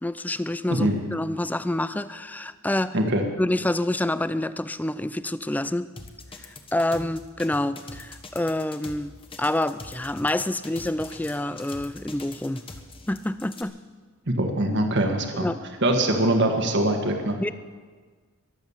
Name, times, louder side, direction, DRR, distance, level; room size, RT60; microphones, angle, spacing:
voice 1, 0.0-3.0 3.4-5.9 6.7-9.1 9.4-12.7 13.1-13.7 15.3-15.6 17.4-17.5, left 1 dB, 5° left, 14 dB, 0.4 m, -27 dB
voice 2, 0.7-1.0 2.9-3.2 14.3-15.5 15.8-17.4, right 1 dB, 55° right, 4 dB, 1.7 m, -23 dB
sound 1, 6.0-13.6, left 3 dB, 25° left, 1.2 m, -42 dB
22.5 x 8.0 x 7.2 m, 1.5 s
head